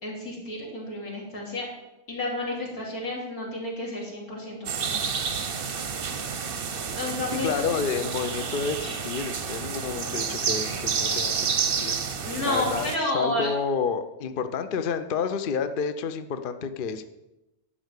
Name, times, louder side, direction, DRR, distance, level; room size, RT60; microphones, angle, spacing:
voice 1, 0.0-1.7 2.1-5.3 6.9-7.9 12.2-13.5, left 1 dB, 75° left, -3 dB, 3.5 m, -31 dB
sound 1, 4.7-13.0, right 6 dB, 45° right, 0.8 m, -30 dB
voice 2, 7.4-12.0 12.4-17.0, left 6 dB, 50° left, 10 dB, 0.6 m, -30 dB
11.5 x 4.7 x 8.1 m, 0.95 s
omnidirectional pair, 1.5 m